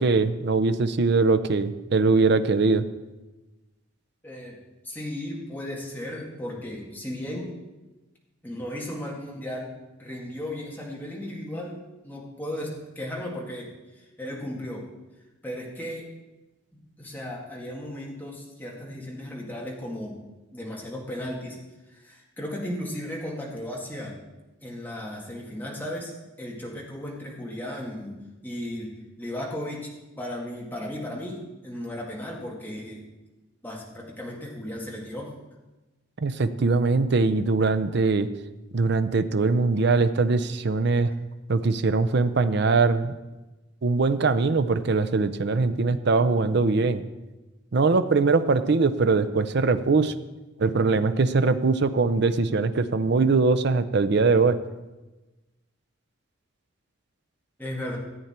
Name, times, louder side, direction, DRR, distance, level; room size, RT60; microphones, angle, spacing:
voice 1, 0.0-2.9 36.2-38.3 38.7-41.1 41.5-43.1 43.8-47.0 47.7-50.1 50.6-54.6, right 3 dB, 55° right, 11 dB, 0.5 m, -22 dB
voice 2, 4.2-4.6 4.8-7.5 8.4-9.7 10.0-14.8 15.4-16.1 16.7-20.2 20.5-21.6 21.9-24.2 24.6-26.1 26.4-28.2 28.4-28.9 29.2-29.9 30.2-33.1 33.6-35.3 57.6-58.0, left 1 dB, 10° left, -3 dB, 2.0 m, -35 dB
14.0 x 8.7 x 4.4 m, 1.1 s
head